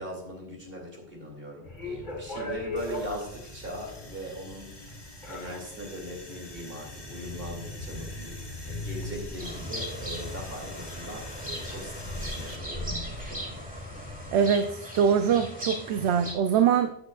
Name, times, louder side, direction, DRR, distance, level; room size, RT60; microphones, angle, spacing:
voice 1, 0.0-13.6, equal, 60° right, 0 dB, 2.8 m, -40 dB
sound 1, 1.6-14.3, left 1 dB, 45° left, 2.2 m, -39 dB
sound 2, 2.8-12.6, left 2 dB, 25° left, 1.1 m, -47 dB
sound 3, 9.4-16.3, equal, 10° right, 2.0 m, -39 dB
voice 2, 14.3-17.0, right 7 dB, 85° right, 9 dB, 0.8 m, -23 dB
12.5 x 8.1 x 2.4 m, 0.78 s
omnidirectional pair, 1.1 m